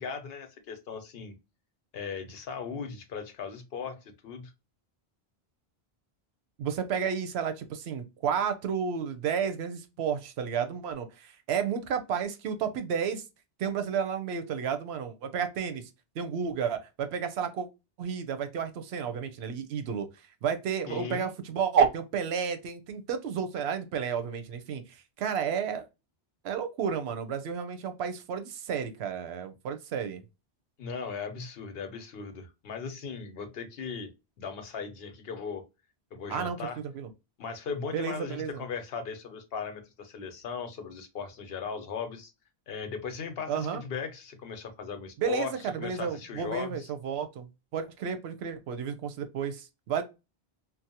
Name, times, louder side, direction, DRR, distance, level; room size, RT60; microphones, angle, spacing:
voice 1, 0.0-1.3 1.9-4.5 20.9-21.3 30.8-34.1 34.4-35.6 36.1-36.8 37.4-42.3 42.7-46.9, left 5 dB, 70° left, 0.9 m, -38 dB
voice 2, 6.6-13.2 13.6-15.9 16.2-17.7 18.0-20.1 20.4-25.8 26.4-30.2 36.3-36.6 36.9-37.1 37.9-38.6 43.5-43.8 45.2-47.5 47.7-50.0, right 7 dB, 85° right, 0.8 m, -31 dB
2.6 x 2.1 x 2.7 m
omnidirectional pair, 1.0 m